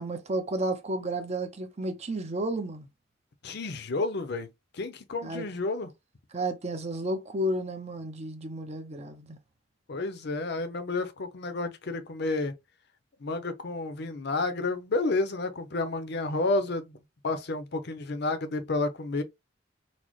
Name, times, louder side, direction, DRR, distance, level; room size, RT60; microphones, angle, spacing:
voice 1, 0.0-2.9 5.2-5.5 6.3-9.4, right 1 dB, 35° right, 0.7 m, -32 dB
voice 2, 3.4-4.5 4.8-5.9 9.9-12.5 13.2-16.9 17.2-19.2, left 3 dB, 60° left, 0.7 m, -30 dB
4.1 x 2.1 x 3.0 m
head